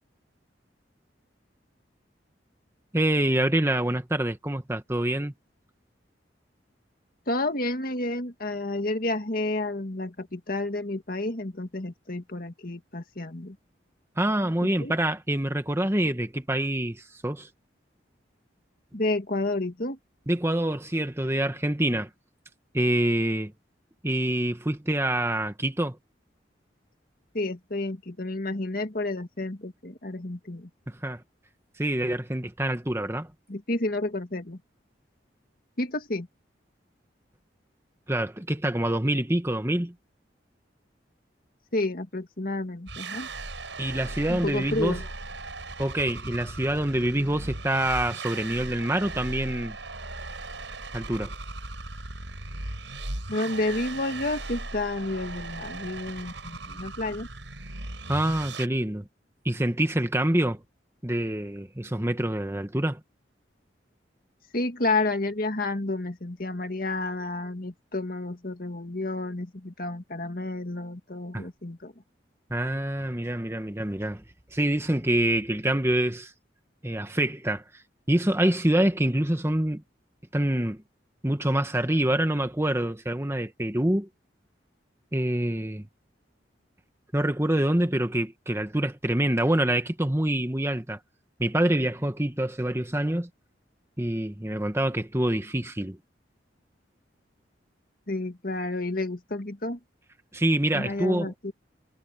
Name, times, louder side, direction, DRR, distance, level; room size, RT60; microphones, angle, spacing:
voice 1, 2.9-5.3 14.2-17.5 20.3-22.1 22.7-23.5 24.0-26.0 30.9-31.2 31.8-33.3 38.1-39.9 43.8-45.0 45.8-49.8 50.9-51.3 58.1-59.1 59.4-60.6 61.0-63.0 71.3-71.5 72.5-74.2 74.5-76.3 76.8-77.6 78.1-79.8 80.3-80.8 81.2-84.1 85.1-85.9 87.1-91.0 91.4-93.3 94.0-96.0 100.3-101.3, right 1 dB, 15° right, 1.4 m, -26 dB
voice 2, 7.3-13.6 14.6-14.9 18.9-20.0 27.3-30.7 33.5-34.6 35.8-36.3 41.7-43.3 44.3-45.0 53.3-57.3 64.5-71.9 98.1-99.8 100.7-101.5, left 2 dB, 50° left, 2.1 m, -30 dB
sound 1, 42.9-58.7, right 2 dB, 80° right, 6.8 m, -38 dB
head